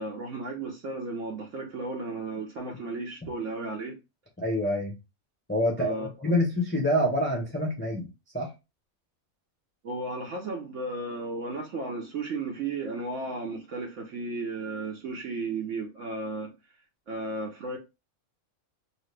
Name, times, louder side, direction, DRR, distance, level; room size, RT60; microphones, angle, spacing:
voice 1, 0.0-4.0 5.8-6.3 9.8-16.5 17.1-17.8, right 3 dB, 65° right, 1.0 m, -34 dB
voice 2, 4.4-4.9 5.5-8.1 8.3-8.5, left 1 dB, 10° left, 0.6 m, -26 dB
2.9 x 2.8 x 3.2 m
omnidirectional pair, 1.5 m